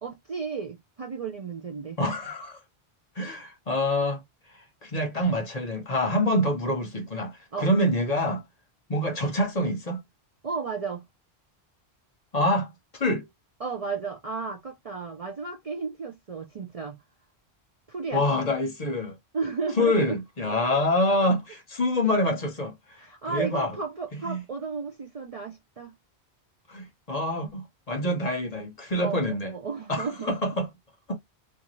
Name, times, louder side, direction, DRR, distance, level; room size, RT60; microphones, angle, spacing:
voice 1, 0.0-2.0 7.5-7.7 10.4-11.1 13.6-17.0 17.9-18.2 19.3-20.2 23.0-25.9 29.0-30.4, right 5 dB, 45° right, 0.5 m, -33 dB
voice 2, 2.0-2.6 3.2-4.2 4.5-8.4 8.9-10.0 12.3-13.2 18.1-19.1 19.8-23.8 24.2-24.4 26.7-29.5 29.9-30.7 31.1-31.2, left 1 dB, 40° left, 0.8 m, -26 dB
2.6 x 2.3 x 2.9 m
omnidirectional pair, 1.1 m